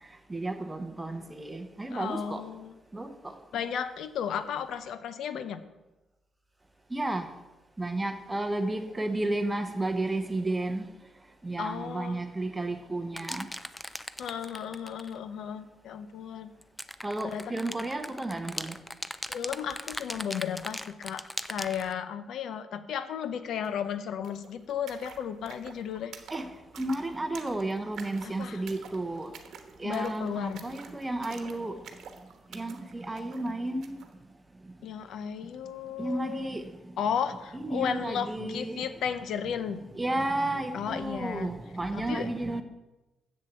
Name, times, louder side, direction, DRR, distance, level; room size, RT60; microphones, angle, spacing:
voice 1, 0.3-2.4 2.9-3.3 6.9-7.3 7.8-10.9 11.4-13.5 17.0-18.8 26.3-26.5 26.7-29.3 29.8-31.8 32.5-34.0 34.6-34.7 36.0-36.9 37.5-38.9 40.0-42.6, right 2 dB, 10° right, 0.9 m, -32 dB
voice 2, 1.9-2.7 3.5-5.6 11.6-12.2 14.2-16.5 17.2-17.5 19.3-26.1 28.2-28.6 29.8-30.7 34.8-36.5 37.0-39.8 40.7-41.5 41.9-42.3, left 8 dB, 75° left, 0.8 m, -34 dB
sound 1, 13.2-15.2 16.6-21.9, left 1 dB, 5° left, 0.4 m, -38 dB
sound 2, 23.6-23.7 23.9-34.1, right 6 dB, 65° right, 1.1 m, -49 dB
7.6 x 7.4 x 7.5 m
cardioid pair, 150°, 0 cm